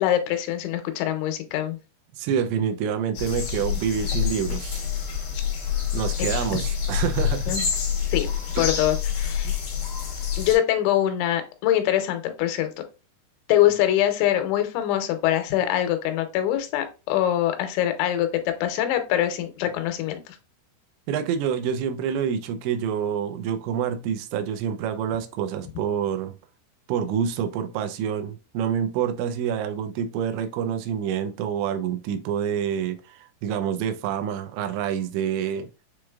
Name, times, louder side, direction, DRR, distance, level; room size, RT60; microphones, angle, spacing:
voice 1, 0.0-1.8 6.5-6.6 7.5-7.7 8.1-8.3 8.6-9.6 10.4-12.7 13.5-20.4, left 12 dB, 90° left, 7 dB, 3.1 m, -24 dB
voice 2, 2.2-4.8 5.9-7.6 8.6-8.7 9.4-9.5 21.1-26.4 26.9-35.7, right 8 dB, 90° right, 8 dB, 2.9 m, -27 dB
sound 1, 3.1-10.5, left 8 dB, 55° left, 2.7 m, -27 dB
7.2 x 3.2 x 2.3 m, 0.31 s
omnidirectional pair, 5.2 m